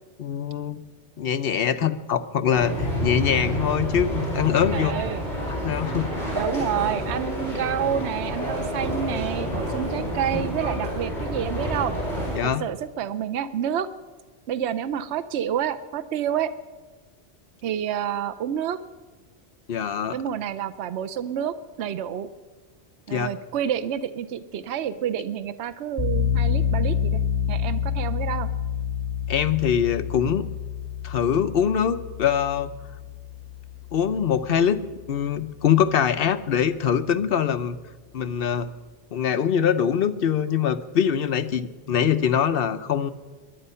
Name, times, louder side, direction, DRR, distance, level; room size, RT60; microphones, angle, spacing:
voice 1, 0.2-0.8 1.2-4.9 5.6-6.1 12.4-12.6 19.7-20.2 23.1-23.3 29.3-30.5 31.0-32.7 33.9-34.8 35.1-37.8 38.1-38.7 39.1-43.1, left 8 dB, 60° left, 9 dB, 0.9 m, -23 dB
sound 1, 2.5-12.4, equal, 40° left, 5.9 m, -29 dB
voice 2, 4.7-5.3 6.3-12.0 12.4-13.9 14.5-16.5 17.6-18.8 20.1-22.3 23.1-27.2 27.5-28.5, right 9 dB, 75° right, 11 dB, 0.9 m, -28 dB
sound 2, 26.0-34.8, left 7 dB, 35° right, 3.2 m, -28 dB
21.0 x 11.0 x 5.6 m, 1.3 s
omnidirectional pair, 1.2 m